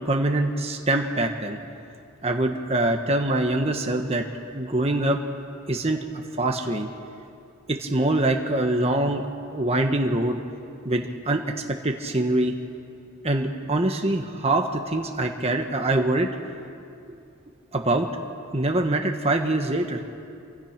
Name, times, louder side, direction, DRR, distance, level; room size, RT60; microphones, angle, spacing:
voice 1, 0.0-1.6 2.2-4.2 4.5-5.2 5.7-6.0 6.4-6.9 7.7-9.2 9.5-10.4 10.8-11.4 11.8-12.5 13.2-16.3 17.7-18.1 18.5-20.0, right 2 dB, 30° right, 3 dB, 1.3 m, -24 dB
28.0 x 24.5 x 6.0 m, 2.5 s
head